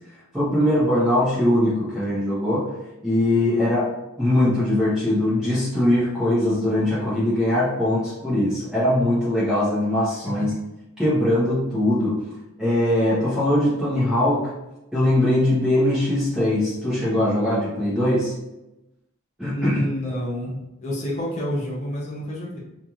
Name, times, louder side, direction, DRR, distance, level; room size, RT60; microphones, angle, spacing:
voice 1, 0.3-2.7 3.0-10.5 11.0-12.1 12.6-14.5 14.9-18.3 19.4-19.8, left 1 dB, 5° right, -12 dB, 0.8 m, -21 dB
voice 2, 19.5-22.6, equal, 30° left, -4 dB, 0.6 m, -28 dB
2.9 x 2.5 x 2.3 m, 0.95 s
head